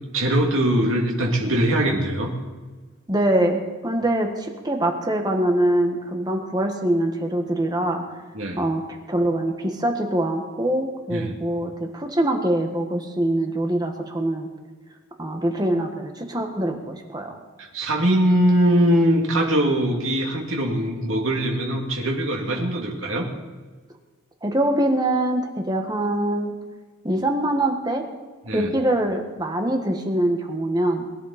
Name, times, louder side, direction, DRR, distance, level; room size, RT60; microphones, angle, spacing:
voice 1, 0.1-2.3 8.3-8.6 11.1-11.3 17.6-23.3 28.5-28.7, right 1 dB, 80° right, 0 dB, 2.6 m, -21 dB
voice 2, 3.1-8.0 8.6-14.5 15.2-17.4 24.4-26.5 27.0-28.0 28.5-31.1, right 1 dB, 20° right, 3 dB, 1.5 m, -24 dB
22.5 x 10.5 x 4.3 m, 1.4 s
head